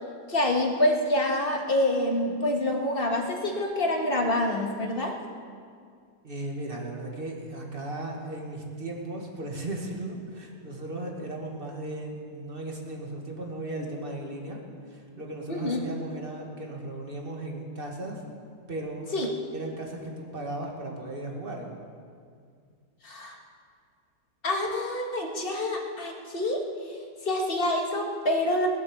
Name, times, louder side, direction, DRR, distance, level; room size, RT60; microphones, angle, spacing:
voice 1, 0.3-5.1 15.5-15.8 19.1-19.3 23.0-23.4 24.4-26.6 27.2-28.7, left 1 dB, 30° left, 1 dB, 1.7 m, -26 dB
voice 2, 6.2-14.6 14.9-18.2 18.7-19.0 19.5-21.7, right 2 dB, 30° right, 0 dB, 2.1 m, -36 dB
21.0 x 7.7 x 7.1 m, 2.2 s
omnidirectional pair, 2.0 m